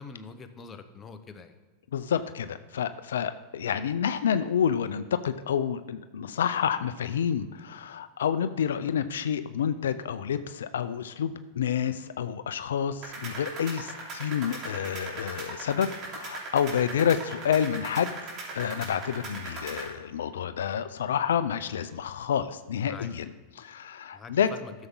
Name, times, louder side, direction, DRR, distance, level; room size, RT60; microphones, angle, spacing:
voice 1, 0.0-1.6 16.9-17.0 22.9-23.1 24.1-24.7, left 4 dB, 25° left, 8 dB, 1.0 m, -44 dB
voice 2, 1.9-18.1 18.5-24.5, left 8 dB, 90° left, 12 dB, 0.4 m, -29 dB
sound 1, 13.0-19.9, right 2 dB, 45° right, 3.2 m, -39 dB
12.5 x 7.1 x 3.8 m, 1.3 s
hypercardioid pair, 115°, 0 cm